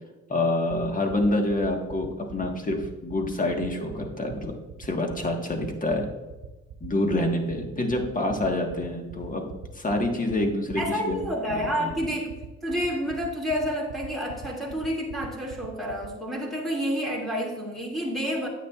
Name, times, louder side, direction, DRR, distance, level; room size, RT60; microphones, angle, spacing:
voice 1, 0.3-6.1 6.8-11.2 11.5-11.9, left 1 dB, 25° left, 3 dB, 1.5 m, -27 dB
sound 1, 0.7-16.1, right 9 dB, 70° right, 1.0 m, -40 dB
voice 2, 10.8-12.4 12.6-18.5, equal, ahead, -4 dB, 2.5 m, -29 dB
9.4 x 8.1 x 2.4 m, 1.2 s
cardioid pair, 90°, 30 cm